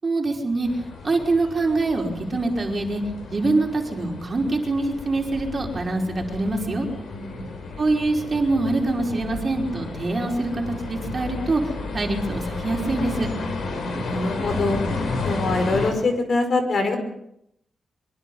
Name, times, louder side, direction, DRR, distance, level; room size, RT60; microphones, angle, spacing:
voice 1, 0.0-3.0 3.3-6.9 7.8-13.3, right 2 dB, 35° right, 1 dB, 5.0 m, -24 dB
sound 1, 0.6-15.9, left 3 dB, 75° left, 6.2 m, -32 dB
voice 2, 7.1-7.5 13.8-14.8 15.2-17.0, left 2 dB, 50° left, 6 dB, 5.6 m, -24 dB
24.0 x 24.0 x 5.5 m, 0.76 s
cardioid pair, 110°, 0 cm